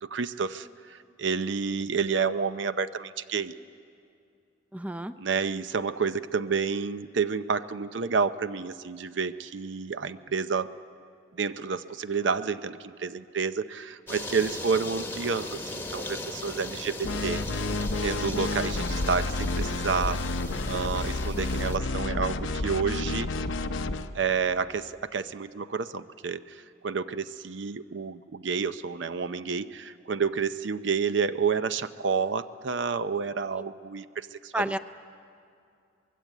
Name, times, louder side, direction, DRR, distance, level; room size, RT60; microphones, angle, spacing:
voice 1, 0.0-3.5 5.2-10.7 11.3-17.4 17.8-20.2 20.7-23.3 24.1-34.8, right 5 dB, 70° right, 12 dB, 0.6 m, -30 dB
voice 2, 4.7-5.1 34.5-34.8, right 1 dB, 5° right, 11 dB, 0.5 m, -30 dB
sound 1, 14.1-21.8, left 2 dB, 10° left, 1.1 m, -38 dB
sound 2, 17.0-24.1, left 2 dB, 80° left, 0.8 m, -30 dB
24.0 x 21.5 x 8.3 m, 2.4 s
head